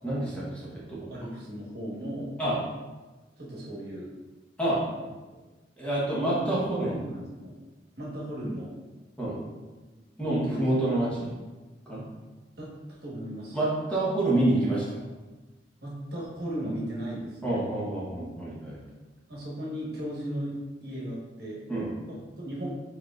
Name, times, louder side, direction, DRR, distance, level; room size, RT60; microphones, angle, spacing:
voice 1, 0.0-1.2 2.4-2.6 4.6-4.8 5.8-7.0 9.2-9.4 10.2-11.3 11.9-12.0 13.5-15.0 17.4-18.8 21.7-21.9, right 1 dB, 5° left, -7 dB, 1.0 m, -27 dB
voice 2, 1.1-2.3 3.4-4.1 4.9-5.4 6.2-6.3 6.8-7.5 8.0-8.7 10.2-10.7 12.6-13.6 15.8-17.7 19.3-20.5 20.8-21.6 22.1-22.7, right 1 dB, 60° right, -5 dB, 1.3 m, -36 dB
4.5 x 4.5 x 2.4 m, 1.2 s
head